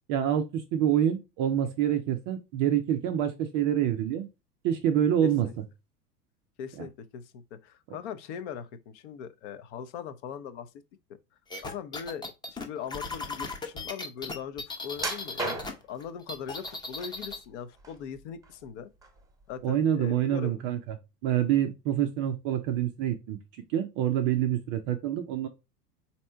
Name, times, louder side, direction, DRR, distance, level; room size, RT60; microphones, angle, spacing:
voice 1, 0.1-4.3 4.6-5.6 6.8-6.9 7.9-8.0 19.6-21.0 21.2-23.4 23.7-25.5, right 10 dB, 25° right, 0.4 m, -27 dB
voice 2, 5.2-5.5 6.6-10.7 11.6-18.9 19.5-20.6, left 8 dB, 45° left, 0.7 m, -40 dB
sound 1, 11.5-15.7 16.0-17.4, left 3 dB, 10° left, 0.7 m, -37 dB
sound 2, 15.0-16.0 16.7-17.3 17.7-18.7 19.0-19.2 19.7-19.8, right 2 dB, 5° right, 1.2 m, -35 dB
4.2 x 2.8 x 4.4 m
figure-of-eight pair, 85°, 48 cm